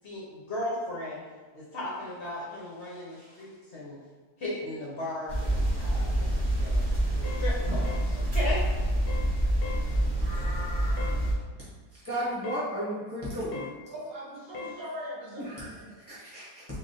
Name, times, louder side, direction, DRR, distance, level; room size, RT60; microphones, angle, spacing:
voice 1, 0.0-1.2 1.5-4.0 4.4-6.8 7.1-8.6, left 1 dB, 50° left, -7 dB, 0.9 m, -36 dB
voice 2, 2.9-3.5 13.9-15.9, equal, 60° right, -5 dB, 1.2 m, -42 dB
sound 1, 5.3-11.3, right 1 dB, 20° right, 0.9 m, -27 dB
sound 2, 7.2-7.5 7.8-8.1 8.4-8.7 9.1-9.3 9.6-9.9 11.0-11.2 12.4-12.7 13.5-13.8 14.5-14.8, left 4 dB, 70° left, 1.1 m, -39 dB
voice 3, 11.9-13.7 15.4-15.7 16.1-16.7, equal, 25° left, -11 dB, 0.8 m, -34 dB
3.6 x 3.5 x 2.6 m, 1.4 s
omnidirectional pair, 1.8 m